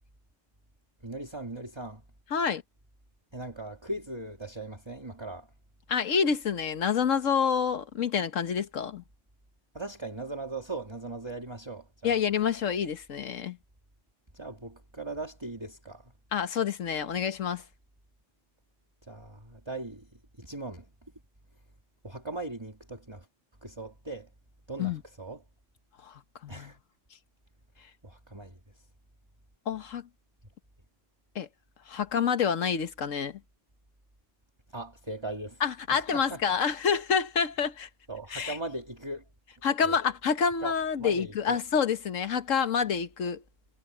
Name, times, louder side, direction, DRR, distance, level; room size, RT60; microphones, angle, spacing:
voice 1, 1.0-2.0 3.3-5.5 9.7-12.2 14.3-16.1 19.0-20.9 22.0-23.3 23.6-24.3 24.7-25.4 26.5-26.8 28.0-28.8 34.7-35.6 35.9-36.5 38.1-39.2 39.8-40.0 40.6-40.7 41.0-41.6, right 2 dB, 20° right, 2.4 m, -39 dB
voice 2, 2.3-2.6 5.9-9.0 12.0-13.6 16.3-17.6 24.8-25.0 26.0-26.1 26.4-26.7 29.7-30.1 31.3-31.5 31.9-33.4 35.6-37.9 38.3-38.6 39.6-43.4, left 6 dB, 90° left, 1.5 m, -28 dB
omnidirectional pair, 1.3 m